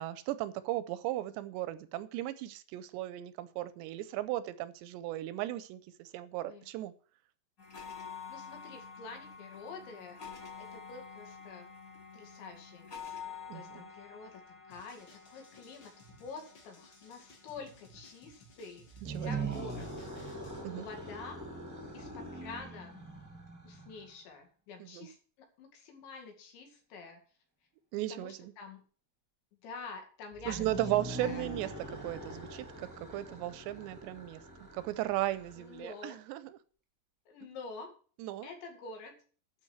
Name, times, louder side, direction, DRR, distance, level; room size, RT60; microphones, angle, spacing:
voice 1, 0.0-6.9 13.5-13.9 19.0-19.3 20.6-20.9 24.8-25.1 27.9-28.5 30.5-31.7 32.0-34.4 34.7-36.6 38.2-38.5, right 15 dB, 85° right, 14 dB, 2.8 m, -36 dB
sound 1, 7.6-19.0, left 6 dB, 60° left, 0.8 m, -49 dB
voice 2, 8.3-10.2 10.6-11.8 12.1-20.1 20.7-21.5 21.9-22.9 23.6-25.2 25.6-27.2 28.1-28.8 29.6-30.7 31.2-31.5 35.6-36.2 37.3-37.9 38.4-39.2, left 4 dB, 85° left, 4 dB, 4.5 m, -48 dB
sound 2, 14.7-20.6, left 1 dB, 40° left, 1.7 m, -59 dB
sound 3, 18.9-24.1 30.3-36.0, right 2 dB, 10° right, 1.1 m, -42 dB
11.5 x 5.2 x 8.0 m, 0.41 s
omnidirectional pair, 5.1 m